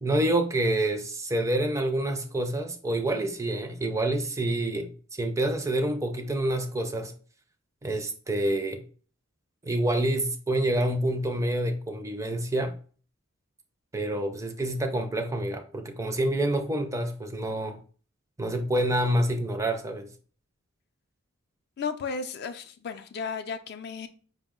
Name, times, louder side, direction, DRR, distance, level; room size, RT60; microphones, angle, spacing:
voice 1, 0.0-7.1 7.8-8.8 9.6-12.8 13.9-17.8 18.4-20.1, right 1 dB, 15° right, 0.4 m, -27 dB
voice 2, 21.8-24.1, left 5 dB, 50° left, 0.4 m, -34 dB
5.2 x 2.0 x 3.6 m
head